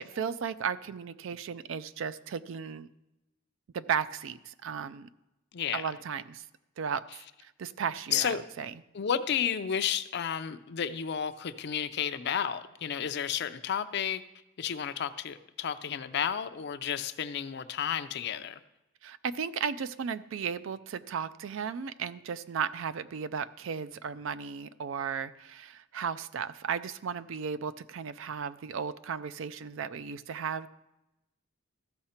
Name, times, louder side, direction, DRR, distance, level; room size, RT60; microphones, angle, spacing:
voice 1, 0.0-2.9 3.7-5.1 5.7-6.4 6.8-7.0 7.4-8.7 19.0-30.7, right 7 dB, 65° right, 15 dB, 0.4 m, -35 dB
voice 2, 5.5-5.9 8.1-8.4 8.9-14.2 14.6-18.6, left 8 dB, 55° left, 11 dB, 0.5 m, -32 dB
14.0 x 5.6 x 4.3 m, 0.95 s
head